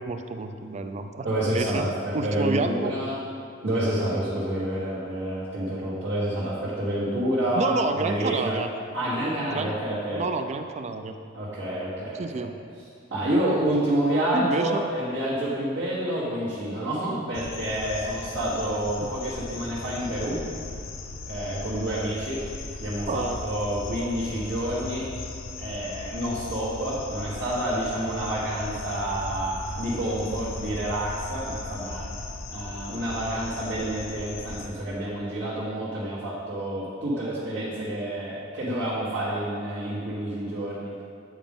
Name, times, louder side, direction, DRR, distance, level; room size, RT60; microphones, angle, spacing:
voice 1, 0.0-2.9 7.6-8.7 9.4-9.7 10.1-11.1 12.2-12.6 14.3-14.9 19.0-19.1 23.1-23.4, right 3 dB, 35° right, 7 dB, 0.3 m, -29 dB
voice 2, 1.2-3.2 3.6-8.6 8.9-10.2 11.3-12.4 13.1-20.4 21.3-22.4 22.8-25.1 25.6-32.1 32.5-41.0, right 1 dB, 65° right, -10 dB, 1.6 m, -28 dB
sound 1, 17.3-34.7, left 3 dB, 80° left, 0.6 m, -37 dB
9.0 x 5.0 x 3.6 m, 2.3 s
head